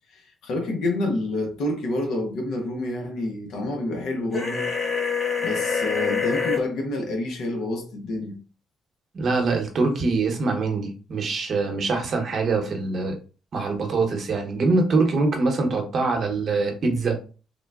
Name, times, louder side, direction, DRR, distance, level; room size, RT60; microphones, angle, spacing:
voice 1, 0.1-4.7 5.4-8.4, left 1 dB, 80° left, 0.7 m, -28 dB
sound 1, 4.3-6.6, left 6 dB, 45° left, 0.9 m, -25 dB
voice 2, 9.1-13.2 13.5-17.2, right 3 dB, 55° right, 0.8 m, -24 dB
3.7 x 2.1 x 2.3 m
cardioid pair, 90°, 0 cm